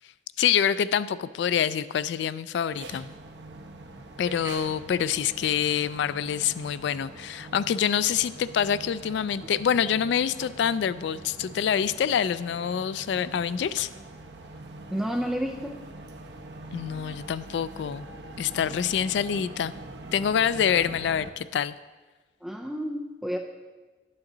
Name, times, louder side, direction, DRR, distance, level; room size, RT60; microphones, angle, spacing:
voice 1, 0.4-3.1 4.2-13.9 16.7-18.0 18.4-19.7 20.1-21.7, left 8 dB, 75° left, 16 dB, 0.3 m, -26 dB
sound 1, 2.7-21.3, right 2 dB, 75° right, 0.8 m, -43 dB
voice 2, 14.9-15.8 22.4-23.4, equal, ahead, 1 dB, 0.4 m, -30 dB
11.5 x 8.7 x 3.9 m, 1.3 s
head